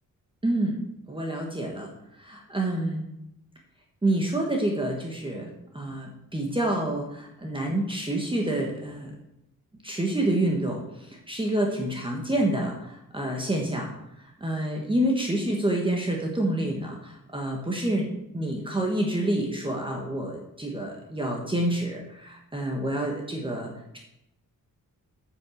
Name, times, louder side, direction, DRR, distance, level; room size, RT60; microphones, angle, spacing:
voice 1, 0.4-0.8 1.1-1.9 2.2-3.1 4.0-9.1 9.8-13.9 14.4-24.0, right 1 dB, 15° right, -1 dB, 1.4 m, -28 dB
9.0 x 6.2 x 6.4 m, 0.83 s
wide cardioid pair, 150°, 34 cm